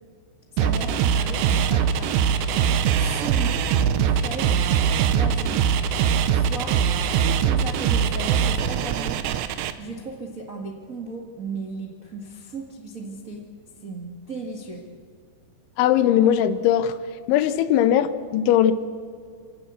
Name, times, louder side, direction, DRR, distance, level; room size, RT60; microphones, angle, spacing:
voice 1, 0.5-2.2 2.9-3.7 4.1-4.6 5.0-5.8 6.3-6.8 7.1-13.5 13.8-14.8, right 3 dB, 55° right, 0 dB, 0.9 m, -36 dB
sound 1, 0.6-9.7, right 7 dB, 75° right, 3.0 m, -22 dB
voice 2, 15.8-17.0 17.3-18.7, left 10 dB, 85° left, 12 dB, 3.4 m, -19 dB
27.5 x 17.0 x 8.3 m, 2.1 s
omnidirectional pair, 5.3 m